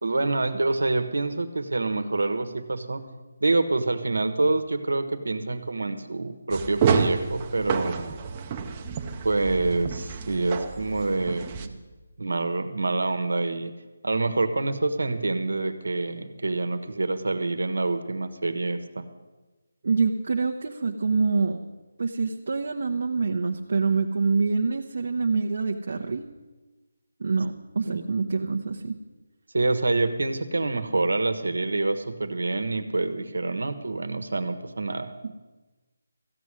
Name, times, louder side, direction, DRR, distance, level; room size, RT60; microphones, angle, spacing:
voice 1, 0.0-3.0 3.4-8.2 9.2-11.7 12.2-13.7 14.0-19.1 27.9-28.0 29.5-35.1, right 2 dB, 90° right, 10 dB, 1.3 m, -26 dB
sound 1, 6.5-11.7, right 6 dB, 20° right, 0.7 m, -29 dB
voice 2, 19.8-21.6 22.0-26.3 27.2-29.0, right 4 dB, 60° right, 2 dB, 0.8 m, -26 dB
14.5 x 6.2 x 9.8 m, 1.2 s
figure-of-eight pair, 165°, 0 cm